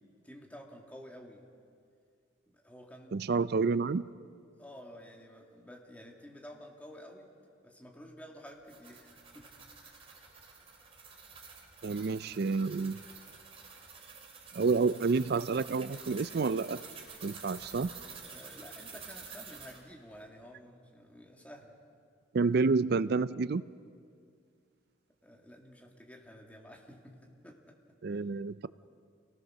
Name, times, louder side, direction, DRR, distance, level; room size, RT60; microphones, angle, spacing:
voice 1, 0.2-1.4 2.5-3.4 4.6-7.3 7.6-9.5 9.8-10.1 18.2-21.7 25.2-27.8 28.1-28.2, equal, 10° left, 0 dB, 2.4 m, -51 dB
voice 2, 3.1-4.0 11.8-13.0 14.5-16.8 17.2-17.9 22.3-23.6 28.0-28.7, right 4 dB, 60° right, 16 dB, 0.5 m, -29 dB
sound 1, 8.5-19.8, right 5 dB, 35° right, 3.1 m, -49 dB
28.5 x 19.0 x 6.5 m, 2.2 s
head